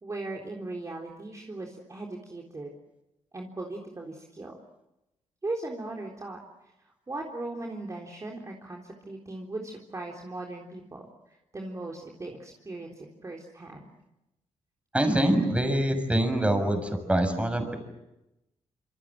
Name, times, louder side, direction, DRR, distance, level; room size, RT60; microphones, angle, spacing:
voice 1, 0.0-2.7 3.3-4.6 5.4-6.4 6.8-13.9, right 2 dB, 30° right, 0 dB, 3.7 m, -38 dB
voice 2, 14.9-17.8, right 1 dB, 10° right, 7 dB, 6.6 m, -25 dB
27.5 x 27.5 x 7.6 m, 0.92 s
cardioid pair, 100°, 12 cm